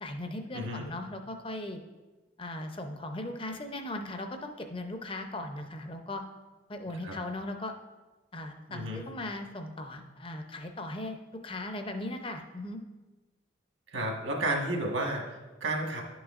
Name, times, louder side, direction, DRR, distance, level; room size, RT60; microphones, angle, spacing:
voice 1, 0.0-1.8 2.4-6.2 6.7-7.7 8.3-11.2 11.4-12.8, left 1 dB, 25° left, 5 dB, 0.6 m, -38 dB
voice 2, 0.5-0.9 7.0-7.1 8.7-9.0 13.9-16.0, right 1 dB, 75° right, 0 dB, 1.4 m, -32 dB
11.0 x 6.1 x 2.5 m, 1.2 s
head